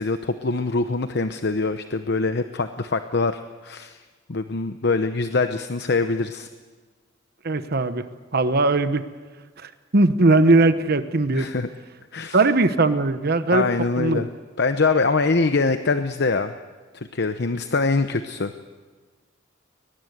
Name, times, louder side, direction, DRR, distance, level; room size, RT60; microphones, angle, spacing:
voice 1, 0.0-4.0 4.3-6.5 11.3-11.7 12.1-12.4 13.5-14.3 14.6-16.5 16.9-18.5, left 3 dB, 60° left, 9 dB, 0.9 m, -23 dB
voice 2, 7.4-8.1 8.3-9.0 9.6-11.5 12.3-13.6 14.0-14.2, right 2 dB, 55° right, 10 dB, 1.0 m, -19 dB
23.0 x 20.5 x 8.0 m, 1.4 s
head